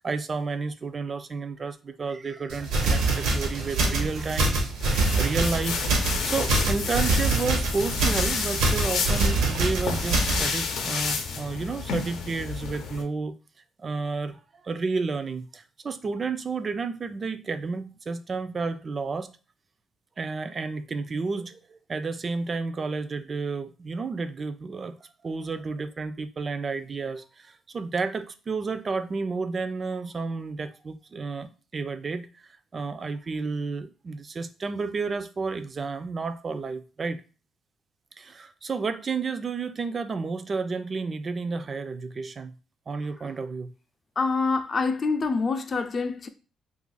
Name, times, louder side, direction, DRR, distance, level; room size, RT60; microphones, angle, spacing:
voice 1, 0.0-4.6 4.9-13.3 13.8-19.3 20.2-24.9 25.2-32.4 32.7-37.2 38.2-42.5 42.9-43.7, right 4 dB, 40° right, 0.4 m, -31 dB
sound 1, 2.5-10.5, right 3 dB, 90° right, 0.9 m, -25 dB
sound 2, 4.8-13.0, left 5 dB, 85° left, 0.6 m, -31 dB
voice 2, 44.2-46.3, left 4 dB, 40° left, 0.5 m, -26 dB
2.8 x 2.5 x 3.9 m
cardioid pair, 90°, 0 cm